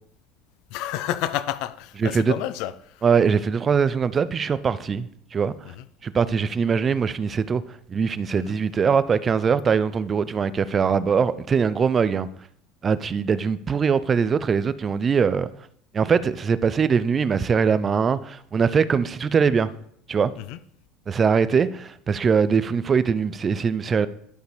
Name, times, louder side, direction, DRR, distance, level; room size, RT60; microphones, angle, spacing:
voice 1, 0.7-3.0 5.7-5.9 8.3-8.6 20.4-20.6, left 13 dB, 65° left, 0.4 m, -30 dB
voice 2, 2.0-2.3 3.0-5.6 6.0-7.6 7.9-12.3 12.8-15.5 15.9-19.7 20.1-20.3 21.1-24.1, right 6 dB, 30° right, 0.4 m, -22 dB
11.5 x 5.1 x 3.2 m
hypercardioid pair, 75°, 0 cm